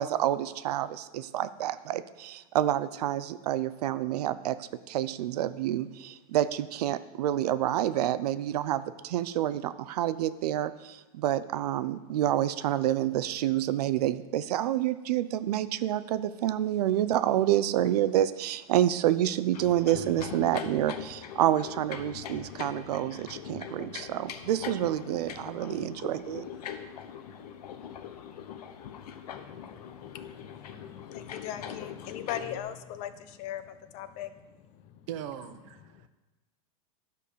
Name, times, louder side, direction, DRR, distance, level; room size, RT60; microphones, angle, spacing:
voice 1, 0.0-26.5, right 12 dB, 85° right, 14 dB, 0.6 m, -28 dB
sound 1, 19.5-32.6, left 8 dB, 85° left, 1.0 m, -42 dB
voice 2, 29.3-35.1 35.9-36.1, left 10 dB, 35° left, 12 dB, 0.6 m, -40 dB
voice 3, 35.1-36.1, right 10 dB, 55° right, 10 dB, 0.8 m, -40 dB
11.5 x 5.4 x 6.6 m, 1.1 s
supercardioid pair, 160°, 20 cm